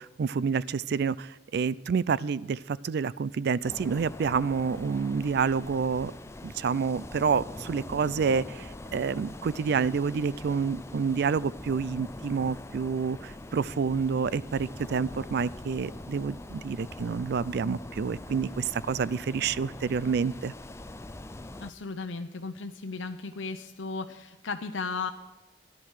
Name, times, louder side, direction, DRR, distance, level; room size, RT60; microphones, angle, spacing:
voice 1, 0.0-6.1 6.4-20.5, right 5 dB, 60° right, 20 dB, 0.4 m, -28 dB
sound 1, 3.6-21.7, left 2 dB, 15° left, 0.5 m, -43 dB
voice 2, 21.6-25.1, left 4 dB, 85° left, 6 dB, 0.8 m, -35 dB
13.5 x 11.0 x 6.4 m, 1.1 s
head